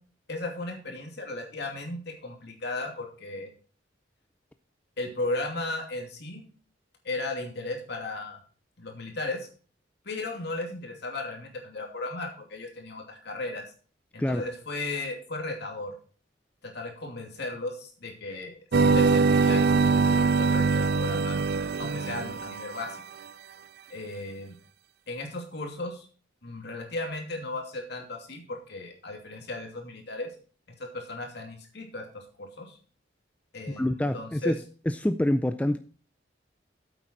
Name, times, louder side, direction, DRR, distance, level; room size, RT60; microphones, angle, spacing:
voice 1, 0.3-3.5 5.0-6.4 7.0-8.4 8.8-9.5 10.0-13.6 14.1-15.9 16.6-21.4 21.8-23.0 23.9-24.5 25.1-26.1 26.4-30.3 30.8-32.8 33.5-34.5, left 2 dB, 60° left, 2 dB, 2.6 m, -36 dB
sound 1, 18.7-23.0, right 4 dB, 55° right, 0.4 m, -23 dB
voice 2, 33.7-34.6 34.9-35.8, left 1 dB, 5° left, 9 dB, 0.4 m, -26 dB
8.8 x 8.2 x 4.4 m, 0.40 s
head